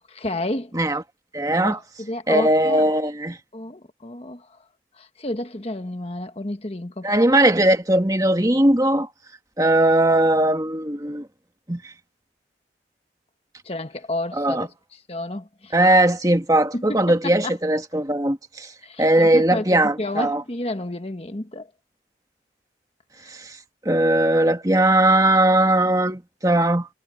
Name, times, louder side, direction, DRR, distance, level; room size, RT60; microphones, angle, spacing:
voice 1, 0.1-0.8 1.6-2.8 3.5-4.5 5.0-7.1 13.6-14.7 15.1-15.7 16.7-17.6 18.8-21.7 23.2-23.3, left 1 dB, 35° left, 1.4 m, -31 dB
voice 2, 1.3-1.8 2.3-3.4 7.0-9.1 9.6-11.3 11.7-11.8 14.3-14.7 15.7-18.7 19.0-20.4 23.3-23.6 23.9-26.9, right 1 dB, 20° right, 1.7 m, -19 dB
head